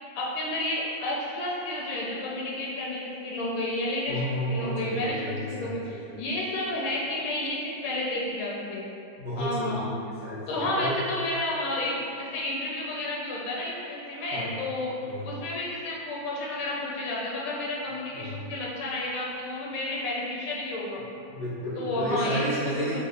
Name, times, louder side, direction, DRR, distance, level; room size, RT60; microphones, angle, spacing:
voice 1, 0.1-8.9 9.4-9.9 10.5-14.9 15.2-21.0 21.8-23.0, left 1 dB, 80° left, -4 dB, 1.3 m, -31 dB
voice 2, 4.1-6.2 9.2-11.0 14.3-14.5 15.0-15.2 18.1-18.5 21.3-23.0, equal, 65° right, -9 dB, 0.7 m, -32 dB
4.0 x 3.2 x 2.5 m, 2.9 s
omnidirectional pair, 2.1 m